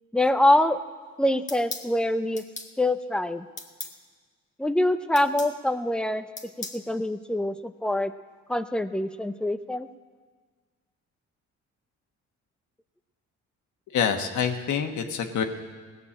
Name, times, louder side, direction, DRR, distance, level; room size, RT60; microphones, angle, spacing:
voice 1, 0.1-0.8 1.2-2.4 2.8-3.4 4.6-6.2 6.6-8.1 8.5-9.9, left 1 dB, 5° left, 11 dB, 0.6 m, -24 dB
sound 1, 1.5-1.9 2.4-2.7 3.6-4.0 5.1-5.5 6.4-6.8, left 3 dB, 25° left, 1.4 m, -37 dB
voice 2, 13.9-15.4, left 7 dB, 75° left, 5 dB, 1.4 m, -26 dB
17.5 x 6.9 x 8.5 m, 1.5 s
cardioid pair, 90°, 30 cm